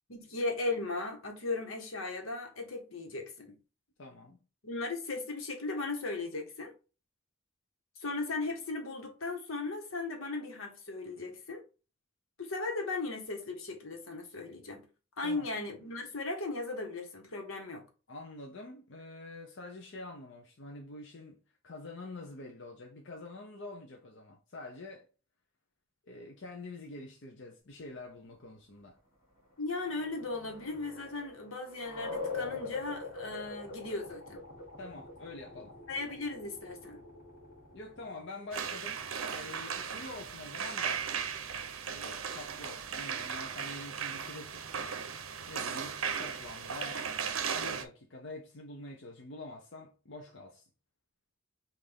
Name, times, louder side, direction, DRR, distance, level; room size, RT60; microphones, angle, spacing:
voice 1, 0.1-3.5 4.6-6.7 8.0-11.6 12.4-14.8 15.2-17.8 29.6-34.4 35.9-37.0, left 3 dB, 90° left, 1.3 m, -37 dB
voice 2, 4.0-4.4 15.2-15.5 18.1-21.4 21.6-25.1 26.0-29.0 34.8-35.8 37.7-39.0 39.3-41.1 41.8-44.6 45.5-47.0 47.5-50.7, left 2 dB, 65° left, 0.7 m, -46 dB
sound 1, 29.4-40.8, left 4 dB, 45° left, 2.7 m, -45 dB
sound 2, 38.5-47.8, right 7 dB, 85° right, 0.6 m, -37 dB
5.7 x 2.6 x 3.4 m
head